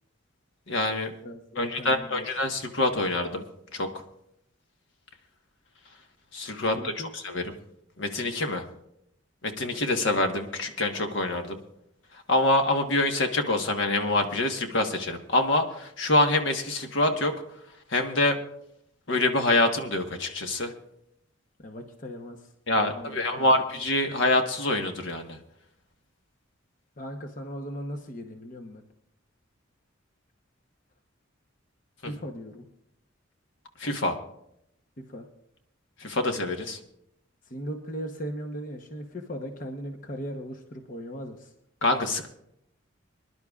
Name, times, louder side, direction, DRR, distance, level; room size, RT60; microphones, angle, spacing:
voice 1, 0.7-1.1 1.6-3.4 3.7-3.9 6.3-7.4 8.0-8.6 9.4-11.6 12.3-17.3 17.9-18.4 19.1-20.7 22.7-25.4 32.0-32.1 33.8-34.2 36.0-36.8 41.8-42.3, left 2 dB, 65° left, 5 dB, 1.3 m, -25 dB
voice 2, 1.2-2.3 6.6-7.1 21.6-23.6 27.0-28.8 32.0-32.6 35.0-35.3 37.4-41.5, equal, 40° left, 3 dB, 1.0 m, -38 dB
26.0 x 11.0 x 2.4 m, 0.78 s
head